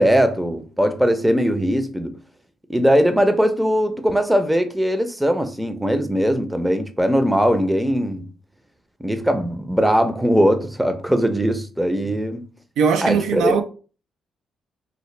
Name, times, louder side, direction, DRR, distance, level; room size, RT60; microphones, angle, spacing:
voice 1, 0.0-2.2 2.7-8.3 9.0-12.4 13.0-13.6, equal, 5° right, 0.5 m, -20 dB
voice 2, 12.8-13.6, right 6 dB, 80° right, 0.4 m, -19 dB
3.9 x 2.1 x 3.2 m
cardioid pair, 90°, 0 cm